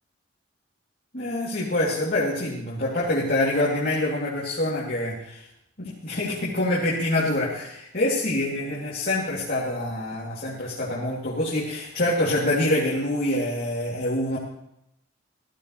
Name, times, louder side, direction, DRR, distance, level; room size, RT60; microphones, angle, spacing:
voice 1, 1.1-5.5 5.8-14.4, left 1 dB, 50° left, -6 dB, 2.9 m, -26 dB
18.0 x 13.5 x 3.2 m, 0.80 s
head